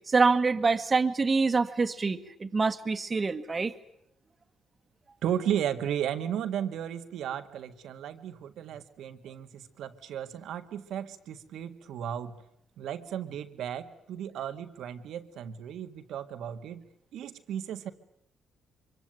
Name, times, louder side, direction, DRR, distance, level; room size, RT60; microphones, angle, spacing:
voice 1, 0.1-3.7, right 4 dB, 30° right, 8 dB, 1.7 m, -25 dB
voice 2, 5.2-12.4 12.8-17.9, right 9 dB, 80° right, 9 dB, 1.8 m, -35 dB
24.5 x 23.5 x 9.3 m, 0.75 s
cardioid pair, 90°, 0 cm